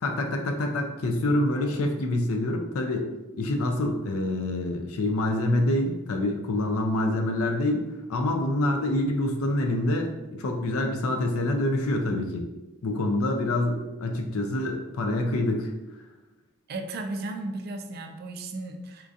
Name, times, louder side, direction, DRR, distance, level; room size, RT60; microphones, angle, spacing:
voice 1, 0.0-3.1 3.3-12.5 12.8-15.7, left 1 dB, 90° left, 3 dB, 0.4 m, -26 dB
voice 2, 16.7-19.1, right 2 dB, 45° right, 5 dB, 0.3 m, -35 dB
4.4 x 2.4 x 2.6 m, 1.1 s
head